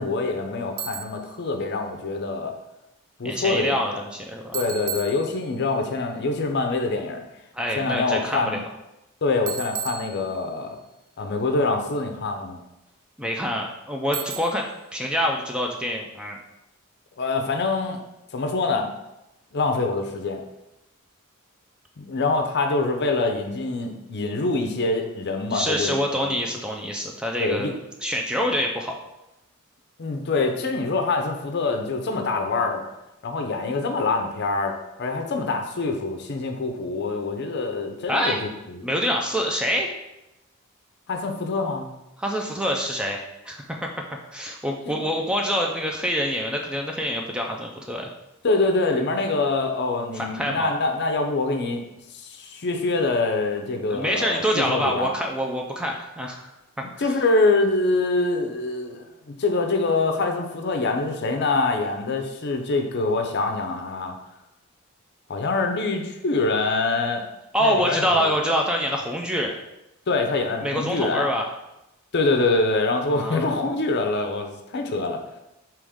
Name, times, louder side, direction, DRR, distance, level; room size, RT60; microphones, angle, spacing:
voice 1, 0.0-2.6 3.2-4.0 4.5-7.2 7.8-8.6 9.2-10.8 11.2-12.6 17.2-18.0 18.3-18.9 19.5-20.4 22.0-26.3 27.4-27.7 30.0-32.8 33.2-38.4 38.7-38.9 41.1-41.9 44.9-45.0 48.4-51.8 52.1-55.1 57.0-64.2 65.3-67.2 67.6-68.3 70.1-71.3 72.1-75.2, left 3 dB, 50° left, 4 dB, 0.5 m, -25 dB
Bicycle, 0.8-1.3 4.5-5.8 9.5-10.7 14.1-14.8, right 8 dB, 70° right, 0.4 m, -34 dB
voice 2, 3.2-4.6 7.5-8.6 13.2-16.4 25.5-27.7 28.0-29.0 38.1-38.4 38.8-39.9 42.2-43.9 44.3-48.1 50.1-50.7 53.9-56.5 56.8-57.2 67.5-69.5 70.6-71.5 73.1-73.6, equal, 5° right, 1 dB, 0.3 m, -26 dB
4.9 x 3.0 x 3.5 m, 0.92 s
head